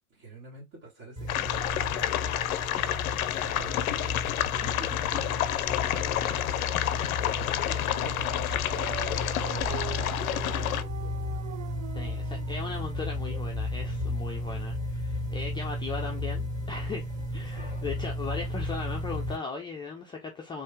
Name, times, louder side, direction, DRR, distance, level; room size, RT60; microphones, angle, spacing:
voice 1, 0.1-2.4 2.9-5.4 5.7-11.2 11.5-11.8 15.4-15.5 17.5-17.9, right 2 dB, 40° right, 1.7 m, -47 dB
sound 1, 1.2-19.4, left 2 dB, 20° right, 1.6 m, -34 dB
sound 2, 1.3-10.8, left 12 dB, 90° left, 0.5 m, -29 dB
Dog, 7.8-13.5, right 13 dB, 65° right, 0.5 m, -43 dB
voice 2, 11.9-17.0 17.3-20.6, left 4 dB, 10° left, 0.4 m, -38 dB
3.3 x 2.8 x 3.3 m
hypercardioid pair, 120°, 41 cm